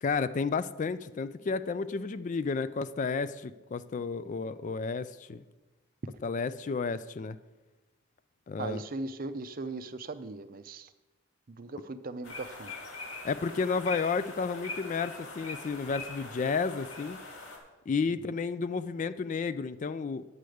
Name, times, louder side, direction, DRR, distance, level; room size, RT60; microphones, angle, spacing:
voice 1, 0.0-5.4 6.2-7.4 8.5-8.8 13.2-17.2 17.9-20.2, left 4 dB, 35° left, 14 dB, 0.3 m, -32 dB
voice 2, 8.6-10.9 11.5-12.7, right 3 dB, 40° right, 11 dB, 0.5 m, -38 dB
sound 1, 12.2-17.6, left 3 dB, 80° left, 2.3 m, -42 dB
9.4 x 5.0 x 7.7 m, 1.1 s
head